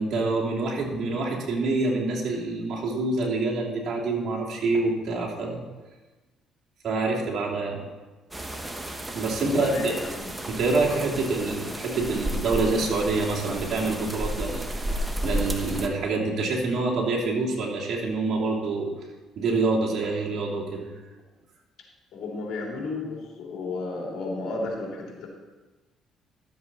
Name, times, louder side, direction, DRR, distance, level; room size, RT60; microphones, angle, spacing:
voice 1, 0.0-5.6 6.8-7.8 9.1-10.0 10.5-14.6 15.2-18.9 19.4-20.9, right 3 dB, 60° right, -3 dB, 2.9 m, -26 dB
sound 1, 8.3-15.9, equal, 10° right, 1.1 m, -32 dB
voice 2, 9.4-10.3 22.1-25.3, left 3 dB, 65° left, -2 dB, 3.3 m, -32 dB
12.5 x 7.6 x 4.2 m, 1.2 s
supercardioid pair, 80°, 0 cm